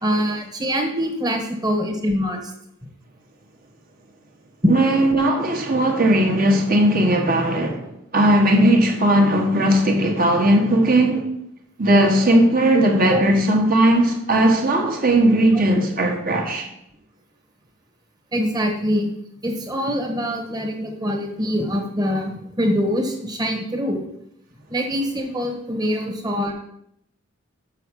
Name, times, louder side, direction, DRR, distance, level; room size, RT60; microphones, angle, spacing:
voice 1, 0.0-2.5 8.6-8.7 13.0-13.2 18.3-19.1 19.4-24.0 24.7-26.5, equal, 20° right, 1.5 m, -24 dB
voice 2, 4.7-11.3 11.8-16.7, right 1 dB, 45° right, 1.6 m, -17 dB
6.8 x 6.5 x 6.5 m
head